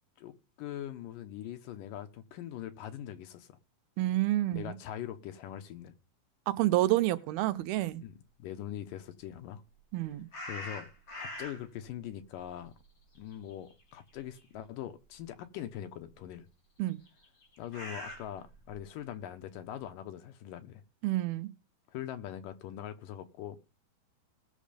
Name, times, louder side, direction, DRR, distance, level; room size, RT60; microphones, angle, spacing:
voice 1, 0.2-3.6 4.5-5.9 8.0-8.1 8.4-9.6 10.5-12.7 13.2-16.5 17.6-20.8 21.9-23.6, left 11 dB, 75° left, 2.5 m, -42 dB
voice 2, 4.0-4.8 6.5-8.0 9.9-10.3 16.8-17.0 21.0-21.5, right 16 dB, 90° right, 2.7 m, -29 dB
sound 1, 10.3-11.8 12.2-13.9 14.1-14.4 15.2-15.3 17.0-18.8, left 1 dB, 30° left, 4.4 m, -43 dB
19.0 x 6.5 x 5.1 m
omnidirectional pair, 4.2 m